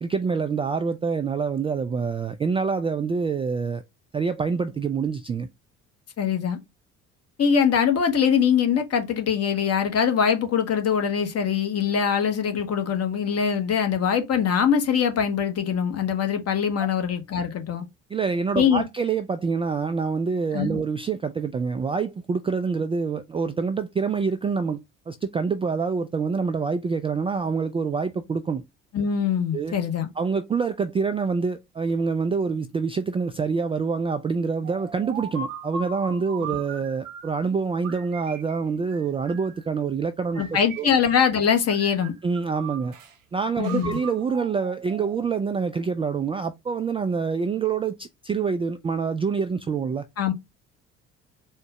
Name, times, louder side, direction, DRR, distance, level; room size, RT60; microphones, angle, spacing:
voice 1, 0.0-3.8 4.1-5.5 16.8-16.9 18.1-28.6 29.5-29.8 30.2-40.4 40.8-40.9 42.2-42.9 43.3-50.0, right 5 dB, 15° right, 0.3 m, -26 dB
voice 2, 6.2-6.6 7.4-17.8 18.5-18.8 20.5-20.8 28.9-30.1 40.4-42.1 43.6-44.0 50.2-50.3, left 7 dB, 40° left, 1.1 m, -23 dB
sound 1, 34.6-37.4 37.8-39.6 40.3-41.4 41.7-43.1 43.6-45.4, right 5 dB, 85° right, 0.6 m, -39 dB
4.3 x 2.1 x 2.8 m
figure-of-eight pair, 50°, 38 cm